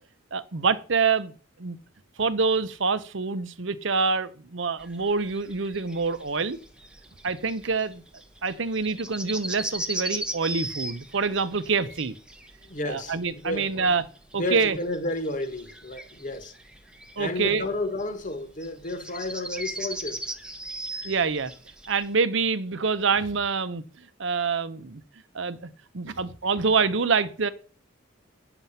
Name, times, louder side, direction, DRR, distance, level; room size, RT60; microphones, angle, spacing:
voice 1, 0.3-1.3 1.6-1.8 2.2-6.6 7.2-8.0 8.4-12.1 12.9-14.0 14.3-14.8 17.2-17.7 21.0-21.5 21.9-23.8 24.2-25.0 25.3-27.5, right 4 dB, 65° right, 0.8 m, -26 dB
sound 1, 4.8-22.1, right 1 dB, 5° right, 0.8 m, -38 dB
voice 2, 12.6-13.2 13.4-13.8 14.4-16.5 17.2-20.3, left 2 dB, 40° left, 1.3 m, -31 dB
9.2 x 6.9 x 5.6 m
head